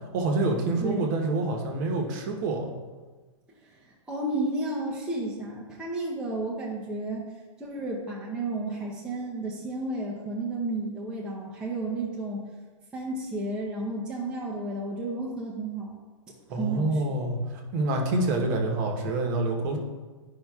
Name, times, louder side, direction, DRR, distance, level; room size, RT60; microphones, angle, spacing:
voice 1, 0.1-2.7 16.5-19.8, right 2 dB, 35° right, 2 dB, 1.0 m, -27 dB
voice 2, 3.6-7.3 7.6-12.4 12.9-15.9 16.6-17.0, right 2 dB, 5° right, -5 dB, 0.6 m, -32 dB
10.5 x 5.4 x 2.3 m, 1.3 s
hypercardioid pair, 155°, 17 cm